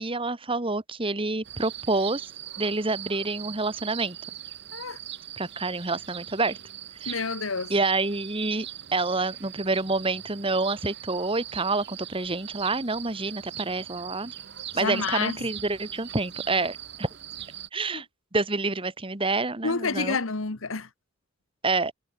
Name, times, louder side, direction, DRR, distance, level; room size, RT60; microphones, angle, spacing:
voice 1, 0.0-2.2 2.6-4.2 5.4-6.6 7.0-7.2 7.7-8.7 8.9-14.3 14.7-17.1 17.7-18.0 18.3-20.2 21.6-21.9, right 3 dB, 25° right, 1.6 m, -28 dB
sound 1, 1.4-17.7, right 11 dB, 55° right, 1.2 m, -41 dB
voice 2, 7.0-7.7 14.7-15.5 17.9-18.0 19.6-20.9, left 4 dB, 75° left, 1.4 m, -29 dB
head